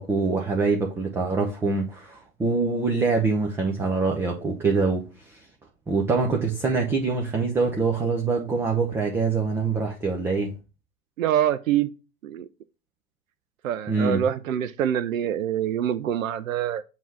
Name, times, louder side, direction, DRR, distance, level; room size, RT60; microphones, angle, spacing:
voice 1, 0.0-5.5 5.9-10.5 13.9-14.3, right 4 dB, 5° right, 0.4 m, -24 dB
voice 2, 11.2-11.9 12.2-12.5 13.6-16.8, right 10 dB, 75° right, 0.5 m, -25 dB
7.1 x 2.8 x 5.7 m
figure-of-eight pair, 95°, 41 cm